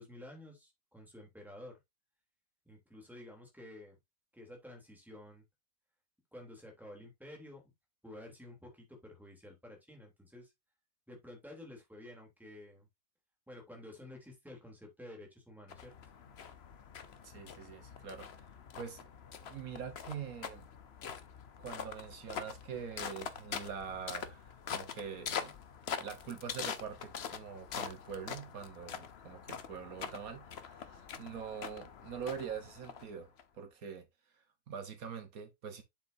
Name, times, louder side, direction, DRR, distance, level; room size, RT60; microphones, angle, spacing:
voice 1, 0.0-1.7 2.7-4.0 4.3-5.4 6.3-7.6 8.0-10.5 11.1-12.9 13.5-16.2, left 1 dB, ahead, 3.1 m, -51 dB
sound 1, 15.7-33.4, left 7 dB, 50° left, 1.0 m, -44 dB
voice 2, 17.2-18.5 18.7-19.1 19.4-20.7 21.6-25.6 26.0-34.1 34.3-35.8, right 7 dB, 75° right, 1.6 m, -44 dB
8.1 x 7.1 x 2.7 m
omnidirectional pair, 1.5 m